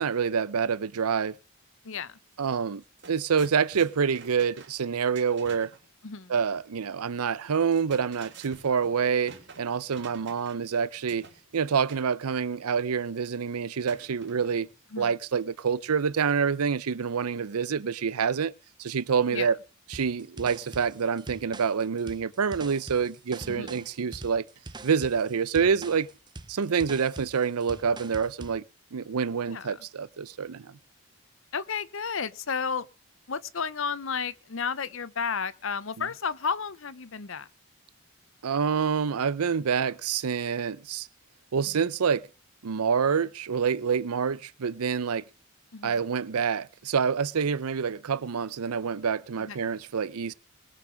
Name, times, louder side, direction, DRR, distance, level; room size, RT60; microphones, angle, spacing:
voice 1, 0.0-1.4 2.4-5.7 6.3-11.3 11.5-14.7 15.0-18.5 18.8-19.6 19.9-24.4 24.8-26.1 26.5-28.6 28.9-30.8 38.4-41.1 41.5-42.3 42.6-45.2 45.8-50.3, right 6 dB, 90° right, 0.6 m, -27 dB
voice 2, 1.8-2.2 6.0-6.3 14.9-15.1 19.3-19.5 23.5-23.8 29.5-29.9 31.5-32.9 33.3-37.5 41.7-41.8 45.7-46.0 49.5-49.6, left 6 dB, 60° left, 0.7 m, -32 dB
sound 1, 2.3-2.5 2.7-5.8 7.5-10.7 11.1-12.1 13.8-14.8, right 5 dB, 50° right, 2.9 m, -50 dB
sound 2, 19.9-28.6, right 2 dB, 20° right, 0.7 m, -44 dB
20.5 x 7.1 x 6.3 m
head